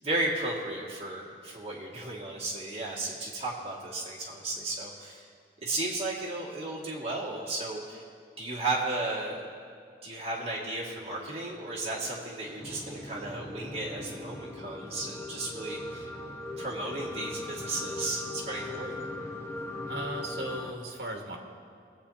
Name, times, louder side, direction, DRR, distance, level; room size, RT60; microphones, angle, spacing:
voice 1, 0.0-5.2 5.6-8.0 8.4-9.4 10.0-16.1 16.6-18.9, right 2 dB, 30° right, -6 dB, 2.2 m, -34 dB
sound 1, 10.6-20.7, equal, 5° right, 2.0 m, -54 dB
sound 2, 12.6-20.7, left 2 dB, 15° left, 0.7 m, -39 dB
voice 2, 19.8-21.4, right 1 dB, 60° right, 1 dB, 1.5 m, -37 dB
23.5 x 8.4 x 2.9 m, 2.3 s
head